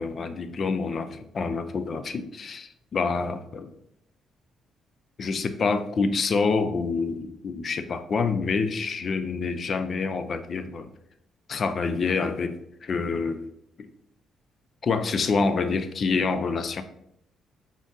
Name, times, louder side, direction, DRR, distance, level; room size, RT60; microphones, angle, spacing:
voice 1, 0.0-3.7 5.2-10.9 11.5-13.4 13.8-13.9 14.8-16.8, left 4 dB, 50° left, 10 dB, 0.4 m, -27 dB
5.1 x 3.6 x 2.7 m, 0.77 s
cardioid pair, 90°, 0 cm